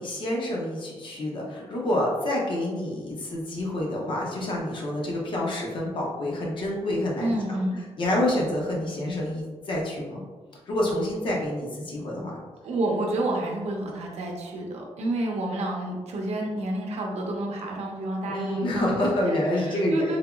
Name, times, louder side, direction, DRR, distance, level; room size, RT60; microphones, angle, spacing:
voice 1, 0.0-7.6 8.0-10.2 10.7-12.4 18.3-20.2, left 1 dB, 45° left, -2 dB, 0.7 m, -28 dB
voice 2, 7.2-7.8 12.6-20.2, right 1 dB, 75° right, 0 dB, 0.6 m, -29 dB
3.4 x 2.8 x 2.3 m, 1.4 s
wide cardioid pair, 175°, 11 cm